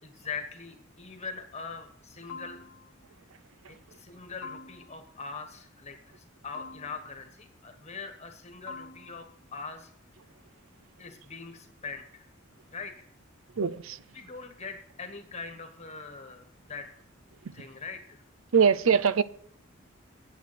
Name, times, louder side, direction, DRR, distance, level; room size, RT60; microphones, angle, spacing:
voice 1, 0.0-2.6 3.7-9.3 9.5-9.9 11.0-12.3 12.7-13.1 14.1-16.9 17.5-18.2, left 4 dB, 35° left, 1.3 m, -42 dB
sound 1, 2.3-3.1 4.4-5.2 6.5-7.3 8.7-9.5, left 5 dB, 75° left, 1.2 m, -46 dB
voice 2, 13.6-14.0 18.5-19.2, right 6 dB, 85° right, 0.5 m, -22 dB
9.3 x 8.2 x 6.1 m
head